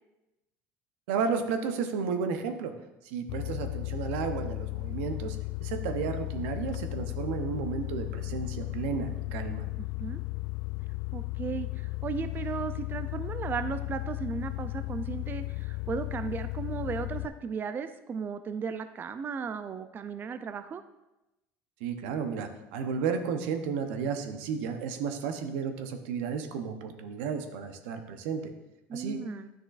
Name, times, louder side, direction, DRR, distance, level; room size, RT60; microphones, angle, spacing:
voice 1, 1.1-2.7 3.0-9.6 21.8-28.5 28.9-29.2, right 6 dB, 80° right, 7 dB, 0.7 m, -33 dB
sound 1, 3.3-17.3, left 22 dB, 75° left, 0.4 m, -35 dB
voice 2, 9.8-10.2 11.1-20.8 28.9-29.5, right 6 dB, 30° right, 10 dB, 0.4 m, -36 dB
10.0 x 6.2 x 2.4 m, 0.98 s
supercardioid pair, 95°, 6 cm